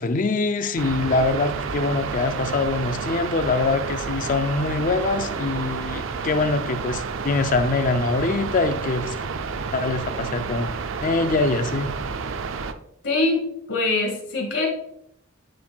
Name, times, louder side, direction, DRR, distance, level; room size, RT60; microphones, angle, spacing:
voice 1, 0.0-9.2 9.7-10.7 11.0-11.9, left 3 dB, 40° left, 10 dB, 0.4 m, -24 dB
sound 1, 0.8-12.7, right 5 dB, 70° right, 0.4 m, -30 dB
voice 2, 13.0-13.4 13.7-14.7, left 2 dB, 60° left, 1 dB, 1.8 m, -23 dB
9.3 x 4.4 x 2.3 m, 0.75 s
head